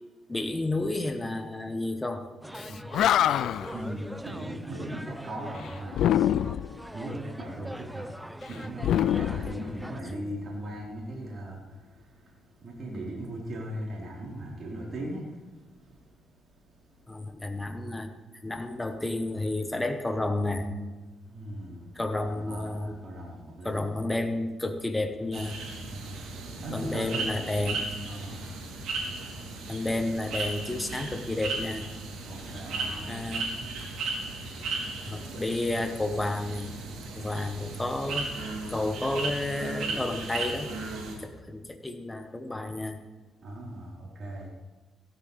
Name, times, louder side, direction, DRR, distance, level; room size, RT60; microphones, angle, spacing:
voice 1, 0.3-2.3 17.1-18.1 18.4-20.7 21.9-23.0 23.6-25.6 26.7-27.9 29.7-31.9 33.1-33.6 35.0-36.7 37.1-38.3 38.7-40.7 41.2-43.0, left 2 dB, 15° left, 6 dB, 1.4 m, -31 dB
sound 1, 2.4-10.0, equal, 5° right, 0.6 m, -43 dB
Animal, 2.6-2.7 2.9-3.8 5.9-6.8 8.8-10.1, left 11 dB, 75° left, 0.3 m, -25 dB
voice 2, 2.6-6.5 6.8-17.3 21.2-23.9 25.9-27.3 28.1-29.7 32.2-33.2 43.4-44.5, right 1 dB, 45° right, -4 dB, 4.7 m, -40 dB
sound 2, 25.3-41.2, right 3 dB, 75° right, 3.7 m, -36 dB
16.0 x 13.5 x 3.6 m, 1.3 s
cardioid pair, 90°, 0 cm